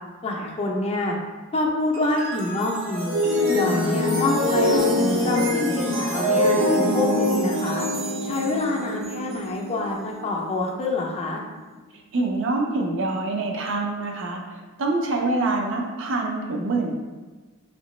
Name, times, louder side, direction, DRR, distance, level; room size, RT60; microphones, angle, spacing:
voice 1, 0.2-1.2 1.5-3.2 3.5-4.9 5.2-7.9 8.2-11.4, left 2 dB, 30° left, -1 dB, 0.4 m, -26 dB
sound 1, 1.9-11.2, left 1 dB, 90° right, 0.9 m, -24 dB
voice 2, 12.1-17.0, right 2 dB, 65° right, 1 dB, 0.5 m, -25 dB
3.1 x 2.8 x 3.1 m, 1.3 s
head